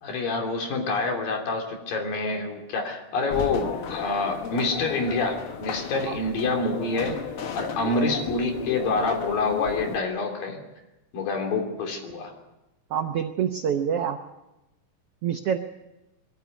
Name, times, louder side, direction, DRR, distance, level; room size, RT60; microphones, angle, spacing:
voice 1, 0.0-7.2 7.5-10.6 11.1-12.3, left 3 dB, 80° left, 2 dB, 4.8 m, -27 dB
sound 1, 3.3-10.0, left 6 dB, 60° left, 1.5 m, -34 dB
voice 2, 12.9-14.2 15.2-15.6, right 8 dB, 85° right, 6 dB, 1.3 m, -26 dB
22.0 x 14.0 x 9.5 m, 0.98 s
omnidirectional pair, 4.0 m